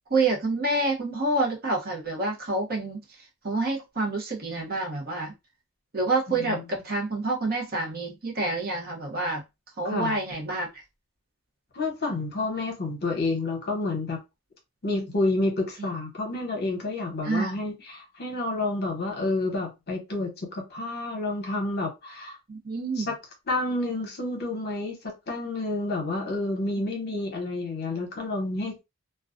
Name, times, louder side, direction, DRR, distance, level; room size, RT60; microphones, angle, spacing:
voice 1, 0.1-3.0 3.4-5.3 5.9-9.4 9.8-10.7 17.2-17.6 22.5-23.1, right 2 dB, 40° right, 0.7 m, -27 dB
voice 2, 6.3-6.6 9.8-10.2 11.7-14.2 14.8-22.4 23.0-23.1 23.5-28.8, left 2 dB, 45° left, 0.8 m, -29 dB
2.2 x 2.2 x 2.5 m
head